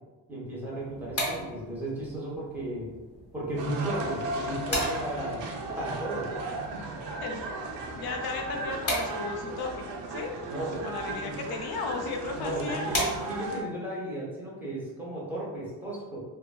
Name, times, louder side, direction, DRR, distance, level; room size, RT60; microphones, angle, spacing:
voice 1, 0.3-2.9 3.3-5.4 5.8-6.3 6.7-7.0 10.5-11.4 12.3-16.2, right 1 dB, 5° right, -5 dB, 0.7 m, -35 dB
sound 1, 0.8-13.7, equal, 35° left, 0.9 m, -38 dB
sound 2, 3.6-13.6, right 2 dB, 75° right, 0.6 m, -36 dB
voice 2, 7.9-10.3 10.7-12.9, left 4 dB, 55° left, 3 dB, 0.5 m, -35 dB
2.7 x 2.6 x 2.2 m, 1.2 s
cardioid pair, 130°, 44 cm